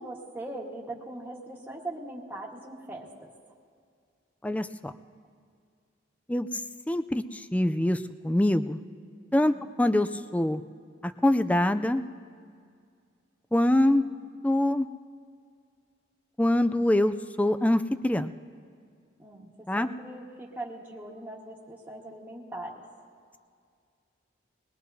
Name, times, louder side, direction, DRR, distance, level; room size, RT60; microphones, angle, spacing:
voice 1, 0.0-3.3 9.4-9.6 13.9-14.2 19.2-22.7, right 2 dB, 10° right, -4 dB, 1.5 m, -41 dB
voice 2, 4.4-4.9 6.3-6.5 6.9-7.2 7.5-8.8 9.3-10.6 11.2-12.0 13.5-14.0 14.4-14.9 16.4-18.3 19.7-19.9, left 1 dB, 5° left, 10 dB, 0.3 m, -24 dB
21.5 x 20.5 x 2.8 m, 2.2 s
head